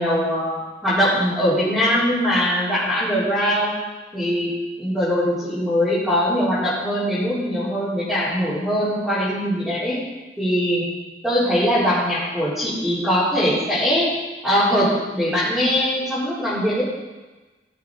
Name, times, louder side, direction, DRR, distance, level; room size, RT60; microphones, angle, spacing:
voice 1, 0.0-3.8 4.1-4.5 4.8-10.0 10.4-10.9 11.2-14.1 14.4-16.8, equal, ahead, -13 dB, 4.0 m, -21 dB
14.5 x 7.5 x 4.9 m, 1.2 s
head